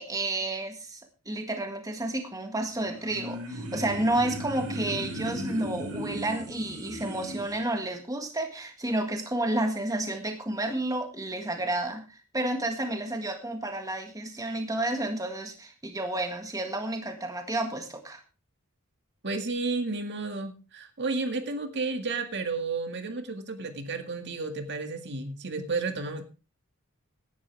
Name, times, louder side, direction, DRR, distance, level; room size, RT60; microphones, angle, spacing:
voice 1, 0.0-18.2, right 1 dB, 15° right, 5 dB, 1.8 m, -31 dB
sound 1, 2.7-7.6, equal, 75° right, 5.8 m, -37 dB
voice 2, 19.2-26.2, right 3 dB, 50° right, 6 dB, 2.0 m, -32 dB
16.5 x 11.5 x 3.5 m, 0.32 s
head